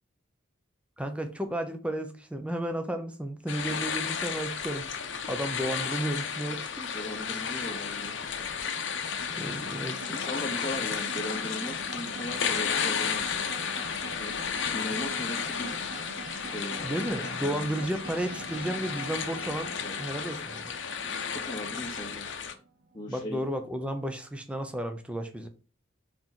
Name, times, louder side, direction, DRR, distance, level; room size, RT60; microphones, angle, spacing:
voice 1, 1.0-6.9 9.4-10.2 16.8-19.7 20.0-20.7 23.1-25.5, right 1 dB, 5° right, 0.8 m, -33 dB
sound 1, 3.5-22.5, left 7 dB, 70° left, 0.9 m, -33 dB
voice 2, 6.9-8.5 10.0-13.6 14.2-15.8 16.4-17.8 19.7-20.1 21.3-22.3 22.9-23.4, equal, 20° left, 0.9 m, -39 dB
sound 2, 6.9-23.3, right 3 dB, 50° right, 0.8 m, -45 dB
4.7 x 4.6 x 5.7 m
head